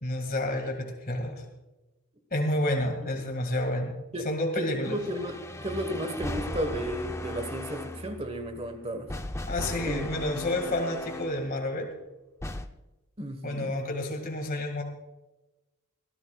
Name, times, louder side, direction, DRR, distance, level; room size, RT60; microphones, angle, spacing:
voice 1, 0.0-1.4 2.3-4.0 4.2-5.0 9.5-11.9 13.4-14.8, left 1 dB, 40° left, 3 dB, 2.0 m, -30 dB
voice 2, 4.5-9.1 9.8-10.0 13.2-13.7, right 1 dB, 25° right, 9 dB, 1.2 m, -33 dB
sound 1, 4.8-11.5 12.4-12.7, left 1 dB, 15° left, 0.5 m, -37 dB
22.0 x 14.5 x 2.4 m, 1.0 s
head